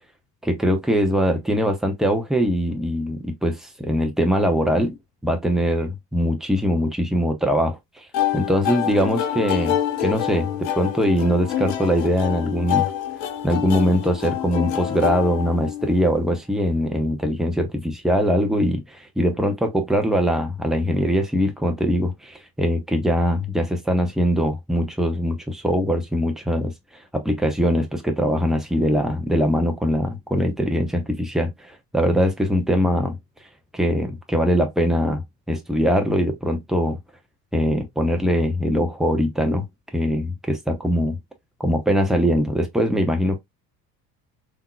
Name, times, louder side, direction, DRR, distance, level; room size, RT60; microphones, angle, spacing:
voice 1, 0.4-5.0 5.2-8.0 8.3-12.9 13.4-26.7 27.1-33.2 33.7-37.0 37.5-39.7 39.9-41.2 41.6-43.4, equal, ahead, 0.8 m, -22 dB
sound 1, 8.1-16.1, left 10 dB, 55° left, 0.7 m, -26 dB
3.6 x 2.8 x 2.2 m
figure-of-eight pair, 60°, 47 cm